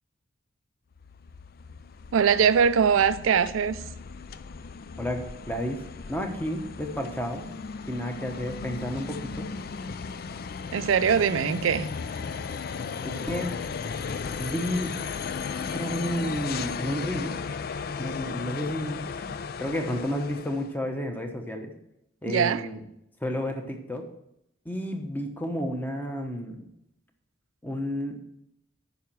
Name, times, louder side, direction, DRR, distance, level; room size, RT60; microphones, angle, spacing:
sound 1, 0.9-20.7, left 5 dB, 50° left, 0.4 m, -36 dB
voice 1, 2.1-3.8 10.7-11.9 22.3-22.7, right 7 dB, 85° right, 0.4 m, -22 dB
voice 2, 5.0-5.8 6.1-7.4 7.9-9.5 13.0-13.5 14.4-14.9 15.7-17.3 18.0-19.0 19.6-21.7 22.2-22.8 23.2-24.1 24.6-26.7 27.6-28.2, equal, 10° left, 1.0 m, -31 dB
9.3 x 5.7 x 6.0 m
head